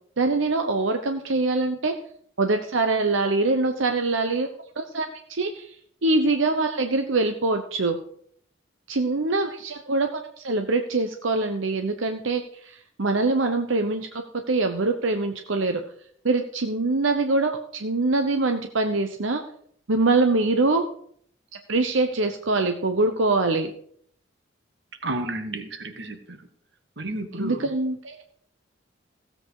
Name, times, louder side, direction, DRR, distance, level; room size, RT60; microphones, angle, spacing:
voice 1, 0.2-1.9 2.4-4.5 4.8-5.7 6.0-8.0 8.9-15.8 16.2-19.4 19.9-20.8 21.7-23.7 27.4-28.2, right 3 dB, 85° right, 6 dB, 0.9 m, -24 dB
voice 2, 25.0-26.4 27.0-27.7, right 2 dB, 60° right, 7 dB, 1.5 m, -32 dB
15.5 x 7.8 x 4.8 m, 0.62 s
head